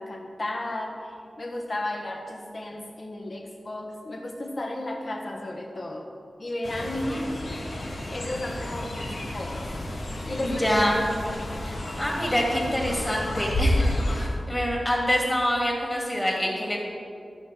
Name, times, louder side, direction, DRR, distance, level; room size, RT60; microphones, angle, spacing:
voice 1, 0.0-6.1 6.4-7.2 7.6-7.7 8.1-9.7 10.3-10.7 11.3-11.4, left 1 dB, 45° left, 2 dB, 1.3 m, -34 dB
Fowl, 6.6-14.3, left 1 dB, 75° left, 1.7 m, -30 dB
voice 2, 7.0-7.3 10.4-11.2 11.6-16.8, equal, 15° left, -1 dB, 2.1 m, -26 dB
12.5 x 4.9 x 6.1 m, 2.4 s
wide cardioid pair, 100°, 0 cm